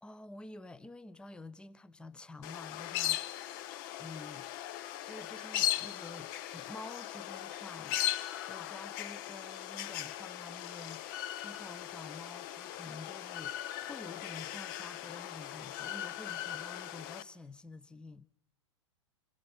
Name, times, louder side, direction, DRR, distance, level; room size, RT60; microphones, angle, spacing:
voice 1, 0.0-3.3 4.0-4.5 5.0-18.3, left 2 dB, 5° left, 0.7 m, -49 dB
sound 1, 2.4-17.2, left 13 dB, 45° left, 0.9 m, -38 dB
25.5 x 16.0 x 8.3 m
figure-of-eight pair, 105°, 16 cm